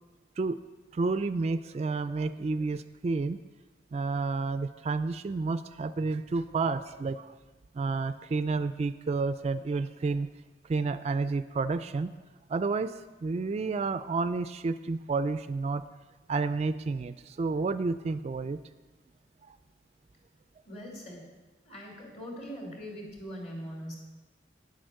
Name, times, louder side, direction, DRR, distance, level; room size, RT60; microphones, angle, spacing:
voice 1, 0.9-3.4 3.9-7.4 7.7-10.3 10.7-12.1 12.5-12.9 13.2-15.8 16.3-18.6, right 4 dB, 35° right, 12 dB, 0.3 m, -30 dB
voice 2, 20.6-21.2 21.7-24.0, equal, 40° left, 0 dB, 3.1 m, -41 dB
9.5 x 7.9 x 6.4 m, 1.2 s
head